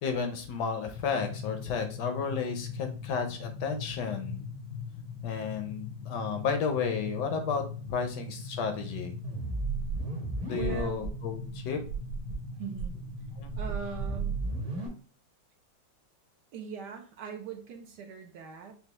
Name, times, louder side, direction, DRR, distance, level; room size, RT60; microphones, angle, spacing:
voice 1, 0.0-4.4 5.2-7.6 7.9-9.1 10.5-11.8 13.4-13.5, left 6 dB, 70° left, 5 dB, 1.1 m, -32 dB
sound 1, 0.9-14.8, left 4 dB, 90° left, 1.5 m, -41 dB
sound 2, 9.2-11.1 11.4-11.5 11.8-12.3 12.7-14.9, right 4 dB, 50° right, 1.4 m, -34 dB
voice 2, 10.5-11.1 12.6-12.9 13.5-14.4 16.5-18.7, right 7 dB, 70° right, 4 dB, 1.1 m, -40 dB
5.5 x 2.3 x 3.0 m, 0.41 s
omnidirectional pair, 2.1 m